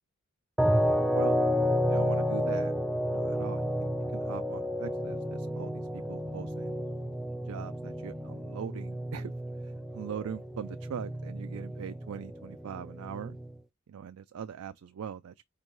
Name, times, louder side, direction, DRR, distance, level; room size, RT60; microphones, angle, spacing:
sound 1, 0.6-13.6, equal, 5° right, 0.4 m, -31 dB
voice 1, 1.9-2.7 3.1-6.8 7.4-9.3 9.6-13.4 13.9-15.3, right 7 dB, 75° right, 0.4 m, -41 dB
4.4 x 3.8 x 3.1 m
head